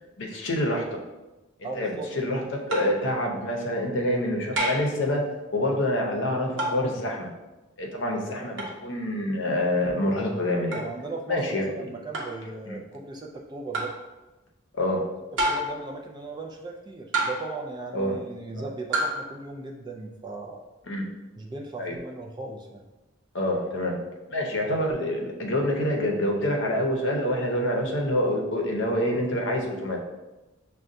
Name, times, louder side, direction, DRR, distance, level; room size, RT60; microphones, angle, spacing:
voice 1, 0.2-0.9 1.6-5.3 5.5-7.3 7.8-10.8 11.3-11.7 12.7-12.8 14.7-15.0 17.9-18.2 20.9-21.1 21.8-22.0 23.3-23.9 24.3-30.0, left 1 dB, 65° left, 0 dB, 0.7 m, -26 dB
voice 2, 1.6-2.1 8.4-8.6 10.7-13.9 15.4-20.6 21.4-22.9, right 3 dB, 20° right, 0 dB, 0.3 m, -37 dB
sound 1, 2.7-3.0 4.6-5.0 6.6-6.9 8.6-8.8 10.7-10.9 12.1-12.4 13.7-14.0 15.4-15.8 17.1-17.6 18.9-19.2, right 1 dB, 70° right, 0.8 m, -28 dB
6.1 x 2.2 x 2.6 m, 1.1 s
head